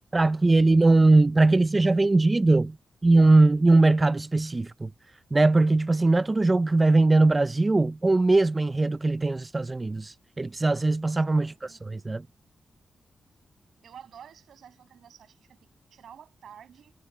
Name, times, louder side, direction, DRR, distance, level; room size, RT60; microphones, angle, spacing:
voice 1, 0.1-2.8 3.0-4.9 5.3-12.3, right 2 dB, 20° right, 0.4 m, -21 dB
voice 2, 11.4-11.9 13.8-16.9, right 8 dB, 90° right, 6.4 m, -50 dB
wide cardioid pair, 130°, 0 cm